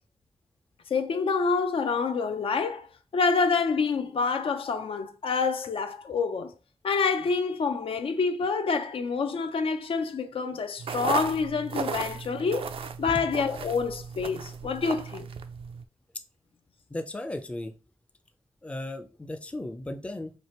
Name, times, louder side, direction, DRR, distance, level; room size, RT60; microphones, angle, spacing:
voice 1, 0.9-6.5 6.8-15.3, left 5 dB, 75° left, 0.5 m, -27 dB
sound 1, 10.8-15.8, right 6 dB, 80° right, 0.4 m, -35 dB
voice 2, 16.9-17.7 18.6-20.3, left 1 dB, 15° left, 0.4 m, -35 dB
3.3 x 2.4 x 4.2 m
wide cardioid pair, 120°, 9 cm